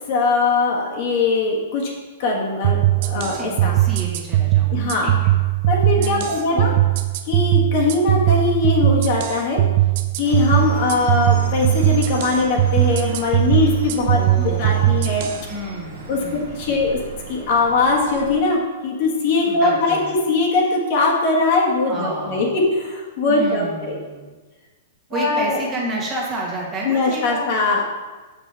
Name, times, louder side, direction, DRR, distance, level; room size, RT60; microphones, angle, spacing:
voice 1, 0.1-1.9 2.2-3.8 4.7-5.1 5.7-6.7 7.2-9.6 10.2-15.3 16.1-17.0 17.3-24.0 25.1-25.6 26.8-27.8, left 3 dB, 50° left, -2 dB, 1.4 m, -21 dB
sound 1, 2.6-15.4, right 15 dB, 50° right, 0.5 m, -19 dB
voice 2, 3.3-5.4 5.9-6.3 6.5-6.7 14.1-15.1 15.5-16.9 19.4-20.1 21.9-22.5 23.3-24.3 25.1-27.5, right 2 dB, 25° right, -4 dB, 1.6 m, -31 dB
sound 2, 10.2-18.4, right 1 dB, 80° right, 1.8 m, -36 dB
6.3 x 5.9 x 3.4 m, 1.3 s
hypercardioid pair, 145°, 0 cm